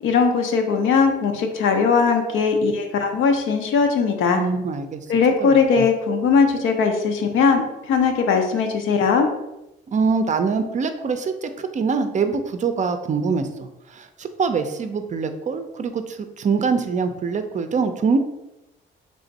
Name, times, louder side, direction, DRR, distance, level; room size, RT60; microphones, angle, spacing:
voice 1, 0.0-4.4 5.1-9.3, left 5 dB, 85° left, 4 dB, 0.6 m, -19 dB
voice 2, 4.3-5.0 5.4-5.5 5.7-5.8 9.9-18.2, right 5 dB, 40° right, 8 dB, 0.4 m, -24 dB
3.4 x 2.5 x 4.0 m, 0.94 s
cardioid pair, 90°, 20 cm